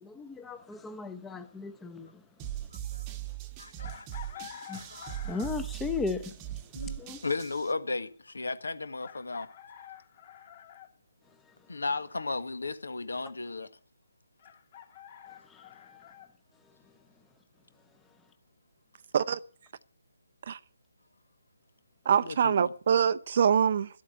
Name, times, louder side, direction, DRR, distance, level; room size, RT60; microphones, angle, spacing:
voice 1, 0.0-2.2 4.7-4.8 5.2-6.3 7.0-7.2 15.5-15.6, left 4 dB, 5° left, 0.9 m, -36 dB
sound 1, 2.4-7.7, right 12 dB, 20° right, 1.1 m, -40 dB
voice 2, 3.6-5.3 6.7-9.5 11.7-13.7 22.2-22.7, left 3 dB, 70° left, 1.7 m, -35 dB
Chicken rooster, 3.8-5.7 7.4-7.5 9.0-10.9 14.4-16.3, left 9 dB, 30° left, 2.6 m, -48 dB
voice 3, 22.1-23.9, right 7 dB, 40° right, 0.6 m, -24 dB
12.5 x 8.4 x 9.0 m
figure-of-eight pair, 145°, 0 cm